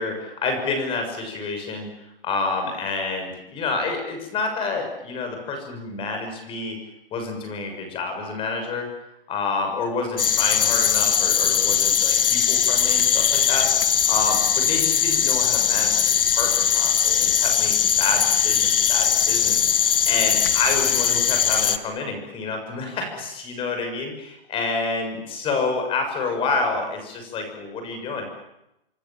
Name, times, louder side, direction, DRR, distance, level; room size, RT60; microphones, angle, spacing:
voice 1, 0.0-1.9 2.2-6.8 7.1-8.9 9.3-13.7 14.0-19.7 20.1-28.3, left 3 dB, 20° left, 5 dB, 6.8 m, -28 dB
sound 1, 10.2-21.8, left 8 dB, 70° left, 1.9 m, -20 dB
27.5 x 23.5 x 7.5 m, 0.88 s
hypercardioid pair, 145°, 29 cm